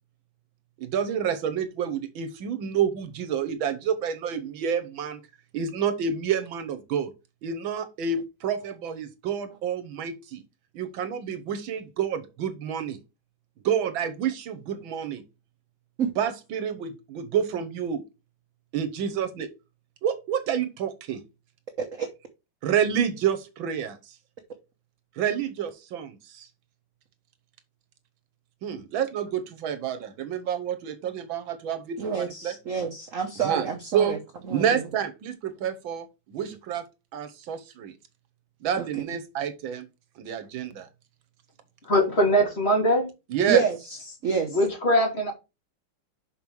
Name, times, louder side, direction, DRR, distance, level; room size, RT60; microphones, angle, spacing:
voice 1, 0.8-5.2 5.5-7.1 7.4-10.4 10.8-13.0 13.6-15.2 16.2-18.0 18.7-19.5 20.0-21.2 22.6-24.0 25.2-26.5 28.6-32.6 33.4-33.7 33.9-34.2 34.5-36.9 37.1-37.9 38.6-39.9 40.2-40.9 43.3-43.6, right 8 dB, 75° right, 1.7 m, -28 dB
voice 2, 21.8-22.1 28.7-28.8 32.0-34.2 34.5-34.8 38.8-39.0 43.5-43.8 44.1-44.6, right 6 dB, 50° right, 1.1 m, -28 dB
voice 3, 41.8-43.1 44.5-45.3, equal, 30° left, 2.8 m, -22 dB
6.2 x 5.3 x 4.6 m
omnidirectional pair, 2.2 m